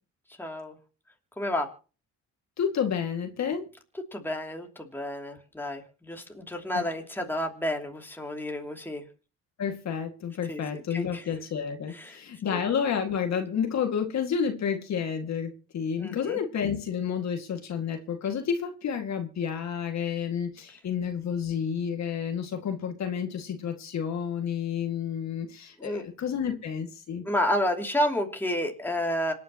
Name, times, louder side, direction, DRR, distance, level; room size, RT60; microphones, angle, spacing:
voice 1, 0.4-0.7 1.4-1.7 4.1-9.1 10.5-10.6 10.9-11.3 11.9-12.2 12.5-12.6 16.0-16.4 25.8-26.0 27.2-29.3, left 1 dB, 5° left, 2.8 m, -30 dB
voice 2, 2.6-3.7 6.7-6.8 9.6-27.2, left 7 dB, 65° left, 2.2 m, -30 dB
26.5 x 9.3 x 3.0 m
cardioid pair, 90°, 30 cm